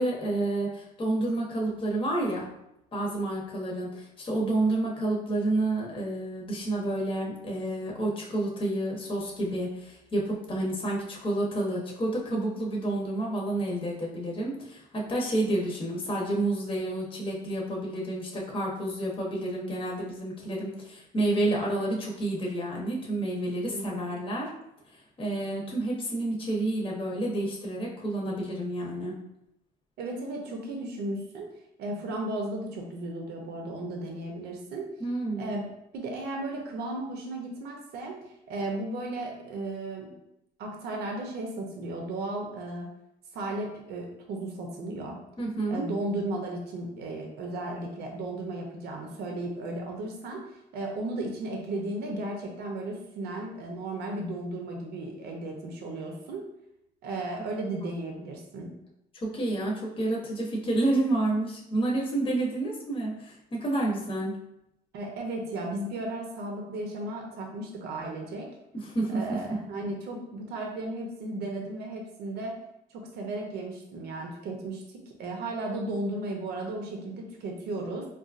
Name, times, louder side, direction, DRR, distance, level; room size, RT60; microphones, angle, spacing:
voice 1, 0.0-2.5 2.9-24.5 24.9-29.2 35.0-35.5 45.4-45.9 59.2-64.4 68.7-69.4, right 2 dB, 30° left, -2 dB, 0.8 m, -29 dB
voice 2, 23.7-24.2 30.0-31.5 31.8-34.9 35.4-35.6 35.9-38.2 38.5-40.1 40.6-42.9 43.3-45.2 45.7-50.4 50.7-56.4 57.0-58.7 64.9-68.5 69.1-72.5 73.1-78.1, right 2 dB, 75° right, 1 dB, 0.7 m, -35 dB
3.9 x 2.4 x 2.4 m, 0.83 s
cardioid pair, 110°, 17 cm